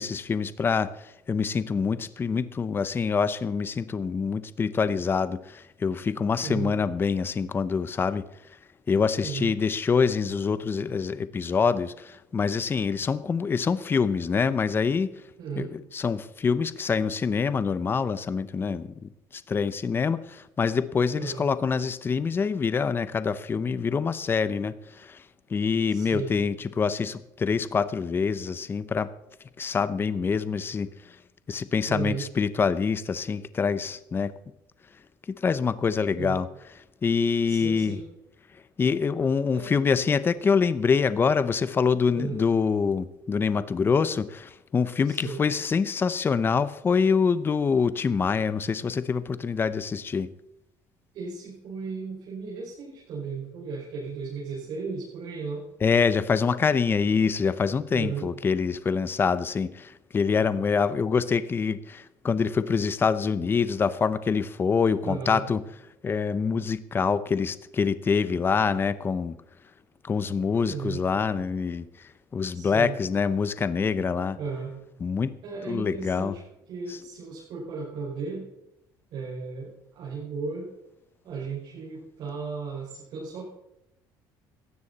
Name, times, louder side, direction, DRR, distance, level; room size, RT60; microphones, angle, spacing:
voice 1, 0.0-8.3 8.9-15.1 15.6-25.2 25.5-29.1 29.6-30.9 31.5-34.3 35.4-36.5 37.0-38.0 38.8-50.3 55.8-65.6 66.0-69.4 70.0-71.9 72.3-74.4 75.0-75.4 75.7-76.3, left 5 dB, 25° left, 15 dB, 0.8 m, -25 dB
voice 2, 6.4-6.8 9.2-9.5 15.4-15.7 21.2-21.5 25.9-26.4 31.9-32.3 36.1-36.4 37.5-38.0 39.5-39.7 42.1-42.4 45.0-45.4 51.1-55.7 57.9-58.3 65.0-65.5 70.7-71.0 72.5-73.0 74.4-74.8 75.4-76.4 76.7-78.5 79.1-80.7 81.2-83.4, right 5 dB, 65° right, -5 dB, 5.4 m, -35 dB
17.5 x 13.5 x 4.2 m, 0.84 s
cardioid pair, 120°, 8 cm